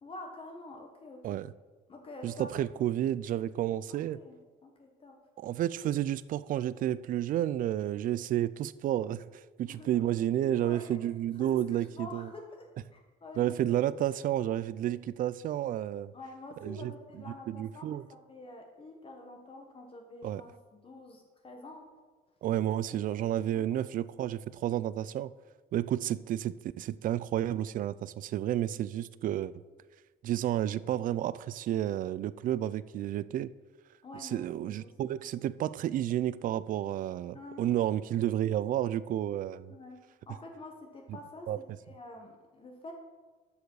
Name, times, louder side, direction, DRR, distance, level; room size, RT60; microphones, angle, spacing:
voice 1, 0.0-1.5 1.9-2.6 3.9-5.2 9.7-10.0 10.6-11.0 11.4-13.6 16.1-21.9 22.9-23.0 23.4-23.7 32.4-32.6 34.0-35.2 37.3-37.8 39.7-42.9, left 2 dB, 35° left, 2 dB, 1.3 m, -48 dB
voice 2, 2.2-4.2 5.4-9.2 9.6-12.3 13.4-16.1 16.6-16.9 17.5-18.0 20.2-20.4 22.4-25.3 25.7-29.5 30.2-33.5 34.2-39.7 41.5-41.6, right 12 dB, 55° right, 17 dB, 0.4 m, -31 dB
13.0 x 4.9 x 4.8 m, 1.4 s
cardioid pair, 110°, 17 cm